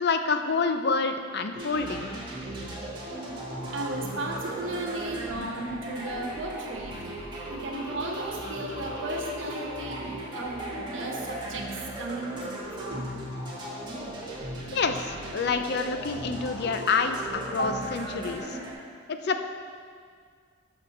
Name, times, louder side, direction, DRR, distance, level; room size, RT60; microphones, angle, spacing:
voice 1, 0.0-2.1 14.7-18.6 19.1-19.4, left 4 dB, 60° left, 7 dB, 0.6 m, -28 dB
sound 1, 1.5-18.7, right 1 dB, 25° right, 1.9 m, -37 dB
voice 2, 3.6-7.0 7.5-12.5 12.8-13.2 13.5-14.3 17.6-17.7, right 2 dB, 85° right, 1 dB, 1.3 m, -35 dB
11.5 x 6.1 x 4.3 m, 2.1 s
head